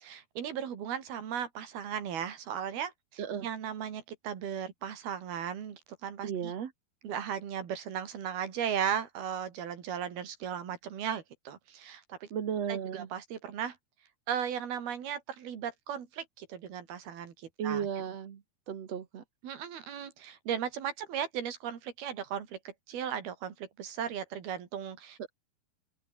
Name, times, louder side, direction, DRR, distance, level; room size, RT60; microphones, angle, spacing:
voice 1, 0.0-6.5 7.0-12.3 12.7-13.8 14.3-17.9 19.4-25.3, right 8 dB, 75° right, 4.8 m, -36 dB
voice 2, 6.2-6.7 12.3-13.1 17.6-19.2, right 8 dB, 50° right, 2.6 m, -35 dB
omnidirectional pair, 4.4 m